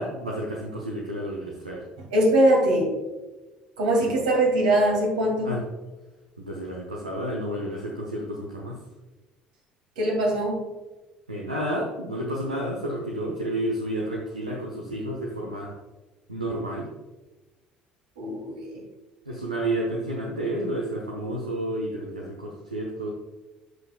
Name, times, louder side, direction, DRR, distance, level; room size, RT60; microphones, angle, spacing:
voice 1, 0.0-1.8 4.0-4.1 5.4-5.6 6.4-8.8 11.3-15.8 16.3-16.9 19.3-23.1, right 1 dB, 85° right, -2 dB, 0.9 m, -30 dB
voice 2, 2.0-2.9 3.8-5.6 10.0-10.6 18.2-18.8, right 1 dB, 70° right, 0 dB, 2.3 m, -22 dB
14.0 x 5.4 x 2.2 m, 1.2 s
figure-of-eight pair, 55°, 4 cm